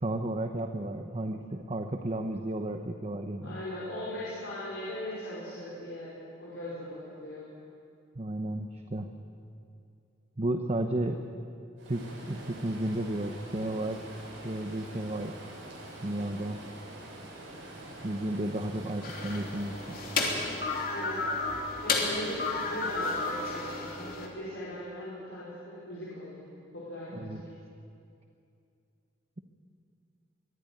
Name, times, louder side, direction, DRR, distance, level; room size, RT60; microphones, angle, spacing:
voice 1, 0.0-3.6 8.2-9.1 10.4-11.2 11.9-14.0 14.4-15.3 16.0-16.6 18.0-20.0 27.1-27.4, right 1 dB, 35° right, 5 dB, 0.9 m, -33 dB
voice 2, 3.4-7.5 20.9-21.3 21.8-26.5 26.7-27.5, left 1 dB, 70° left, -9 dB, 5.0 m, -39 dB
Stream, 11.8-20.6, right 1 dB, 75° right, 7.4 m, -45 dB
sound 1, 19.0-24.3, left 3 dB, 50° left, 3.2 m, -32 dB
23.0 x 14.5 x 9.2 m, 2.5 s
head